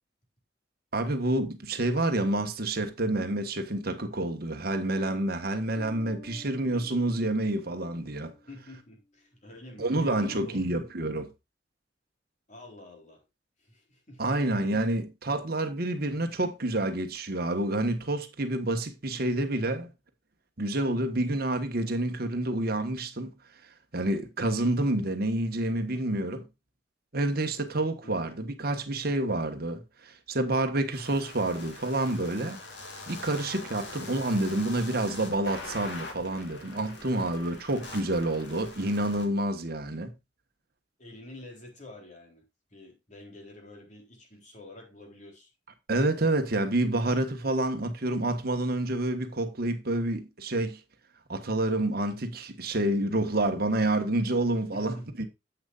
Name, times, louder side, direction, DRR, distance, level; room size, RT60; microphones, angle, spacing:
voice 1, 0.9-8.3 9.8-11.3 14.2-19.9 20.6-23.3 23.9-26.5 27.1-32.6 33.1-40.1 45.9-50.8 51.3-55.2, right 1 dB, 55° right, 1.4 m, -28 dB
sound 1, 5.7-9.1, left 2 dB, 80° left, 3.5 m, -51 dB
voice 2, 8.5-10.8 12.5-13.2 13.6-14.4 28.0-28.3 37.1-37.6 41.0-42.5 42.7-45.5 54.7-55.1, left 1 dB, 40° left, 3.7 m, -48 dB
sound 2, 30.9-39.2, left 2 dB, 65° left, 3.2 m, -43 dB
10.5 x 8.1 x 2.5 m
head